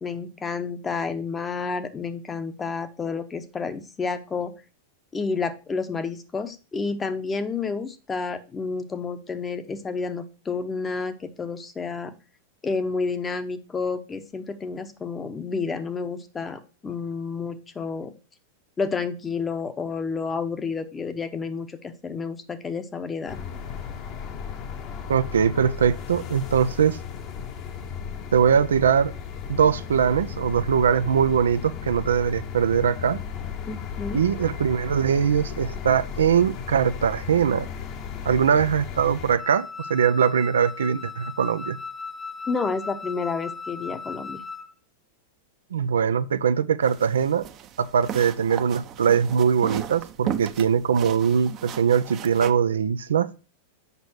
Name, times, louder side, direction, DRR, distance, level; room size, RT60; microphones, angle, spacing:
voice 1, 0.0-4.5 5.1-12.1 12.6-18.1 18.8-23.4 33.6-34.2 42.5-44.4, left 4 dB, 20° left, 0.9 m, -30 dB
sound 1, 23.3-39.4, left 7 dB, 45° left, 1.2 m, -35 dB
voice 2, 25.1-27.0 28.3-29.1 29.5-33.2 34.1-37.7 38.2-41.8 45.7-47.4 47.8-53.3, right 7 dB, 85° right, 0.5 m, -21 dB
Wind instrument woodwind instrument, 39.4-44.7, left 4 dB, 5° left, 0.4 m, -37 dB
sound 2, 46.8-52.5, right 10 dB, 40° right, 0.7 m, -36 dB
6.7 x 5.2 x 4.5 m
hypercardioid pair, 105°, 0 cm